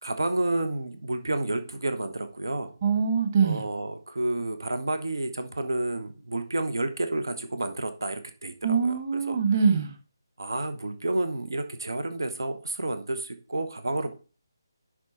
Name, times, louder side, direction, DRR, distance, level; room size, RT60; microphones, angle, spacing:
voice 1, 0.0-2.7 3.4-9.4 10.4-14.1, right 2 dB, 60° right, 9 dB, 0.9 m, -30 dB
voice 2, 2.8-3.6 8.6-9.9, right 6 dB, 35° right, 5 dB, 1.4 m, -23 dB
10.5 x 3.7 x 4.2 m, 0.36 s
figure-of-eight pair, 150°, 2 cm